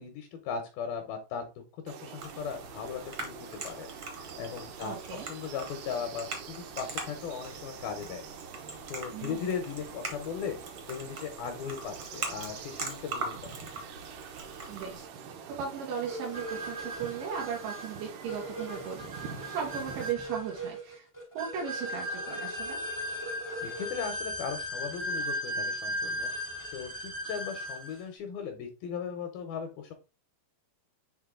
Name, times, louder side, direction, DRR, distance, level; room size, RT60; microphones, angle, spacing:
voice 1, 0.0-8.2 8.9-10.6 10.9-13.7 23.6-26.3 26.7-29.9, left 6 dB, 75° left, 5 dB, 2.3 m, -38 dB
sound 1, 1.9-20.1, right 7 dB, 75° right, 2.8 m, -46 dB
sound 2, 2.2-15.1, right 3 dB, 55° right, 1.4 m, -42 dB
voice 2, 4.8-5.3 9.1-9.5 14.7-21.1 21.3-22.8, right 7 dB, 90° right, -2 dB, 3.8 m, -37 dB
sound 3, 16.0-28.0, equal, 25° left, 0.4 m, -36 dB
7.7 x 3.6 x 3.6 m, 0.29 s
omnidirectional pair, 5.1 m